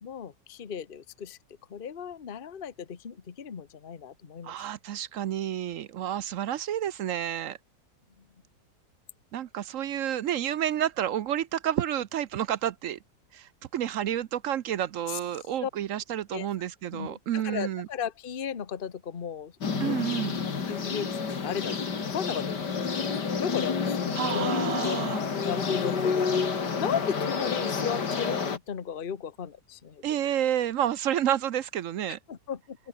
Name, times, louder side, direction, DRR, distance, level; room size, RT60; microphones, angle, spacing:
voice 1, 0.0-1.4 1.7-4.5 15.1-15.2 15.6-15.7 16.3-16.5 16.9-20.0 20.4-25.0 25.4-30.0 32.1-32.8, left 8 dB, 35° left, 1.2 m, -36 dB
voice 2, 4.4-7.6 9.3-13.0 13.3-17.9 19.8-20.4 24.2-25.2 30.0-32.2, right 10 dB, 60° right, 0.8 m, -30 dB
sound 1, 19.6-28.6, left 5 dB, 65° left, 3.0 m, -29 dB
omnidirectional pair, 1.9 m